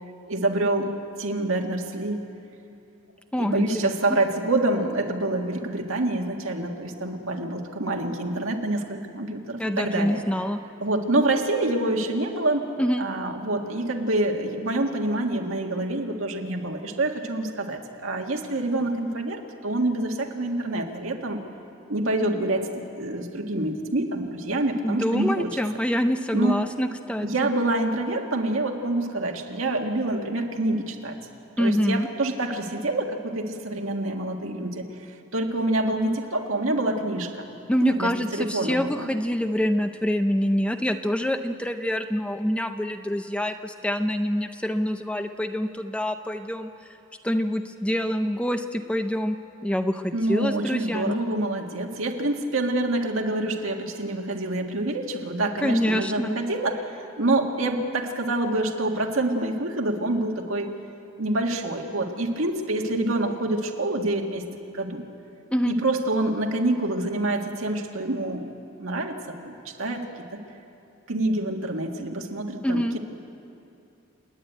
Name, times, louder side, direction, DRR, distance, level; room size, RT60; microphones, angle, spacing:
voice 1, 0.3-0.9 1.2-2.2 3.4-10.2 10.8-12.7 13.0-21.4 21.9-25.5 26.3-26.6 27.2-31.2 31.6-37.4 37.8-39.1 50.1-60.7 61.2-64.4 64.7-65.0 65.7-68.5 68.8-69.1 69.4-70.4 71.1-73.0, right 2 dB, 75° right, 2 dB, 1.8 m, -26 dB
voice 2, 3.3-3.9 9.6-10.6 12.8-13.0 24.8-27.3 31.6-32.1 37.7-46.7 47.2-49.4 49.6-51.2 55.6-56.3 65.5-65.7 72.6-73.0, equal, 5° left, 7 dB, 0.5 m, -26 dB
29.5 x 9.9 x 9.2 m, 2.7 s
head